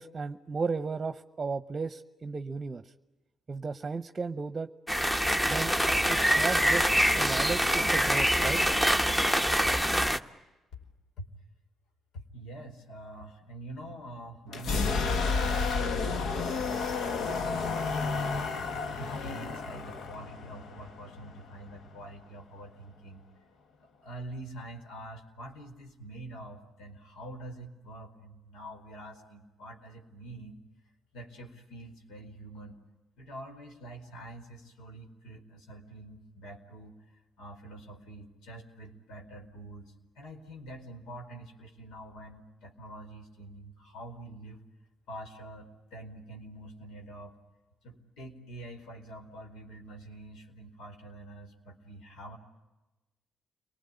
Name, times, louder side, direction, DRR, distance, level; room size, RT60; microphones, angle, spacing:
voice 1, 0.0-2.9 3.5-4.7 5.5-5.7 6.1-8.6, right 4 dB, 30° right, 11 dB, 0.9 m, -34 dB
sound 1, 4.9-10.2, equal, 10° left, 1.3 m, -25 dB
voice 2, 12.1-18.5 19.0-23.2 23.8-30.6 31.1-32.8 33.2-44.6 45.1-47.4 47.8-52.4, right 1 dB, 85° left, 4 dB, 4.6 m, -46 dB
sound 2, 14.5-22.2, left 4 dB, 70° left, 1.6 m, -31 dB
30.0 x 20.5 x 9.8 m, 1.1 s
cardioid pair, 90°, 0 cm